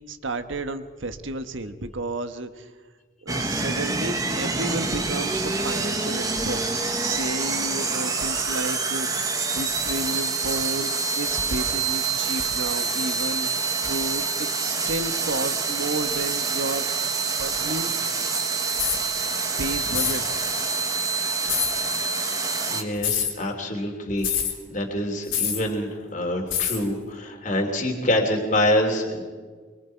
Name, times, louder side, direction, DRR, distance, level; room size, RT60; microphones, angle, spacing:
voice 1, 0.1-2.7 3.2-9.1 9.5-10.9 11.1-13.5 13.8-16.9 17.4-17.9 19.6-20.2 21.4-21.7, right 2 dB, 75° right, 9 dB, 1.4 m, -32 dB
sound 1, 3.3-22.8, right 4 dB, 20° right, 1.5 m, -26 dB
sound 2, 18.7-19.0 19.9-20.2 21.5-21.7 23.0-23.3 24.2-24.5 25.3-25.6 26.5-26.8, left 9 dB, 80° left, 3.5 m, -25 dB
voice 2, 22.7-29.2, left 1 dB, 40° left, 2 dB, 3.0 m, -26 dB
24.0 x 24.0 x 4.6 m, 1.5 s
head